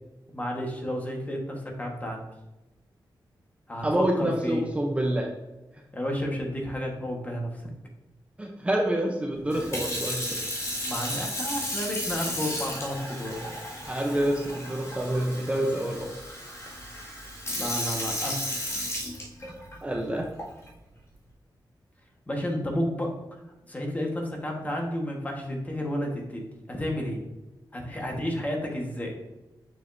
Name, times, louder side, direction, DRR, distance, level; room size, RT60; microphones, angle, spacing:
voice 1, 0.3-2.3 3.7-4.7 5.9-7.6 10.9-13.4 17.5-18.4 22.3-23.1 23.7-27.2 27.7-29.1, equal, 20° left, 0 dB, 1.3 m, -31 dB
voice 2, 3.8-5.3 8.4-10.2 13.9-16.1 19.8-20.2, right 1 dB, 15° right, 0 dB, 0.7 m, -27 dB
Sink (filling or washing) / Fill (with liquid), 9.5-19.7 20.4-20.7, left 1 dB, 35° left, 2.1 m, -34 dB
7.0 x 6.3 x 2.6 m, 1.0 s
wide cardioid pair, 145°, 8 cm